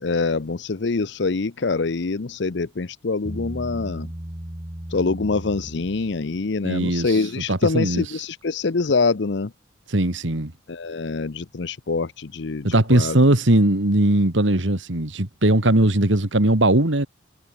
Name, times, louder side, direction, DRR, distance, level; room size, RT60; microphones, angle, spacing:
voice 1, 0.0-4.1 4.9-9.5 10.7-13.2, left 4 dB, 65° left, 0.7 m, -25 dB
Bass guitar, 3.2-6.6, equal, 25° right, 2.7 m, -36 dB
voice 2, 6.6-8.1 9.9-10.5 12.6-17.1, right 1 dB, 75° right, 2.5 m, -19 dB
head